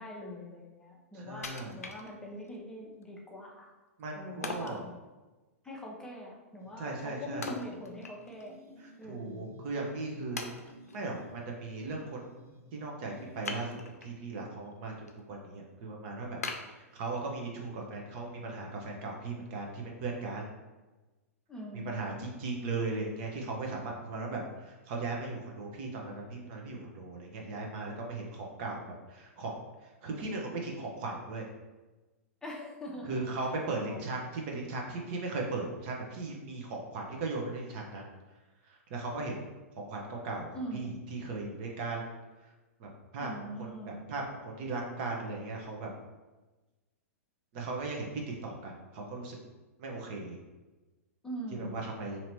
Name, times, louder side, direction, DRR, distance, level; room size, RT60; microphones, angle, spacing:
voice 1, 0.0-3.7 4.1-5.0 5.6-8.6 9.0-9.6 21.5-22.3 32.4-33.2 33.7-34.1 40.5-40.9 43.2-44.0 51.2-51.8, equal, 10° left, -3 dB, 0.7 m, -43 dB
voice 2, 1.1-1.8 4.0-4.8 6.8-7.5 8.8-10.4 10.9-12.2 12.7-14.9 15.3-16.4 16.7-20.5 21.8-28.8 29.1-29.6 29.8-31.5 33.0-38.1 38.6-39.4 39.8-42.1 42.4-42.5 42.8-43.3 43.6-45.9 47.5-48.1 48.4-49.4 49.8-50.4 51.5-52.2, right 3 dB, 45° right, 0 dB, 0.8 m, -37 dB
Wood, 1.4-2.5 3.0-3.1 4.4-4.8 7.4-8.5 8.9-9.0 9.7-9.8 10.4-11.0 13.4-14.2 14.7-15.1 15.5-15.6 16.4-17.4 17.9-18.0, left 3 dB, 80° left, 0.5 m, -41 dB
sound 1, 6.6-14.1, left 2 dB, 85° right, 1.2 m, -55 dB
2.9 x 2.9 x 4.5 m, 1.2 s
figure-of-eight pair, 105°, 8 cm